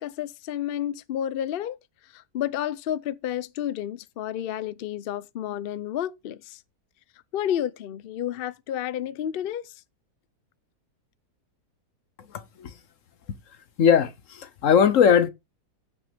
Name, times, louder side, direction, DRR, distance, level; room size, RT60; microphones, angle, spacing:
voice 1, 0.0-1.8 2.1-6.6 7.3-9.7, left 11 dB, 80° left, 0.5 m, -31 dB
voice 2, 12.3-12.7 13.8-15.3, left 7 dB, 55° left, 1.1 m, -20 dB
15.0 x 6.1 x 3.4 m
omnidirectional pair, 1.8 m